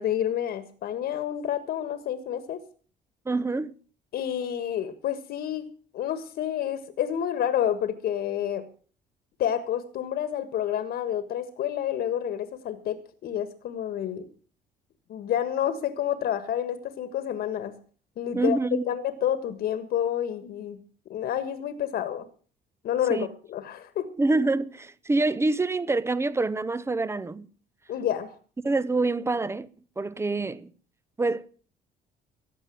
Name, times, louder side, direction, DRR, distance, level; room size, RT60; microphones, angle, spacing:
voice 1, 0.0-2.6 4.1-5.7 5.9-8.7 9.4-14.3 15.1-17.8 18.2-18.6 18.9-20.8 21.1-22.2 22.8-24.1 27.9-28.3, left 10 dB, 65° left, 1.6 m, -29 dB
voice 2, 3.2-3.7 18.3-18.8 23.1-23.3 24.2-27.5 28.6-29.7 30.0-30.7 31.2-31.5, right 3 dB, 15° right, 0.9 m, -26 dB
15.0 x 9.9 x 7.9 m
cardioid pair, 110°, 17 cm